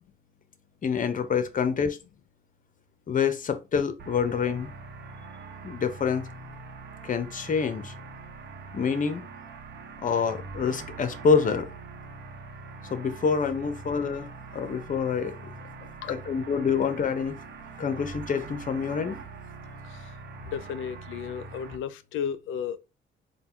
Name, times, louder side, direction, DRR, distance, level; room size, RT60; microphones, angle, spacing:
voice 1, 0.8-2.0 3.1-4.7 5.6-6.3 7.0-7.9 8.7-9.2 10.0-11.7 12.9-14.3 14.5-15.3 16.1-17.4 17.8-19.2, left 6 dB, 40° left, 0.7 m, -26 dB
sound 1, 4.0-21.8, right 4 dB, 60° right, 0.9 m, -43 dB
voice 2, 19.8-20.2 20.5-22.8, left 8 dB, 80° left, 0.5 m, -34 dB
4.0 x 2.2 x 4.3 m
cardioid pair, 90°, 20 cm